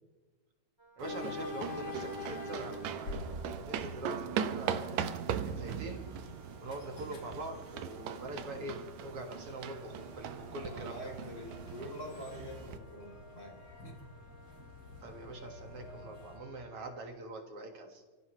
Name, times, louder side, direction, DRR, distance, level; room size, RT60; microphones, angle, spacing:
Wind instrument woodwind instrument, 0.8-17.0, equal, 10° right, 1.5 m, -61 dB
sound 1, 1.0-16.4, left 2 dB, 45° left, 3.4 m, -47 dB
voice 1, 1.0-5.1 5.4-6.0 6.6-11.1 15.0-18.0, right 2 dB, 55° right, 3 dB, 2.5 m, -44 dB
sound 2, 1.0-12.8, right 8 dB, 70° right, 2.1 m, -40 dB
voice 2, 10.6-13.6 13.8-13.9, equal, 20° left, 0 dB, 3.6 m, -45 dB
29.5 x 15.0 x 3.2 m, 1.3 s
omnidirectional pair, 3.4 m